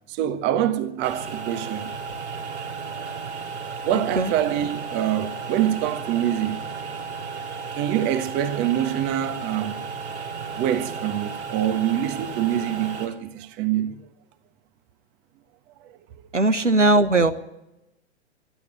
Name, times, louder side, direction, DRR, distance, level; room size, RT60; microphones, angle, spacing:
voice 1, 0.1-1.9 3.8-6.7 7.5-9.8 10.5-14.1 15.8-16.0, right 11 dB, 30° right, 1.4 m, -25 dB
sound 1, 1.0-13.1, right 5 dB, 70° right, 3.8 m, -34 dB
voice 2, 3.9-4.3 16.3-17.3, right 2 dB, 90° right, 1.3 m, -19 dB
25.5 x 11.0 x 9.2 m
figure-of-eight pair, 105°, 35 cm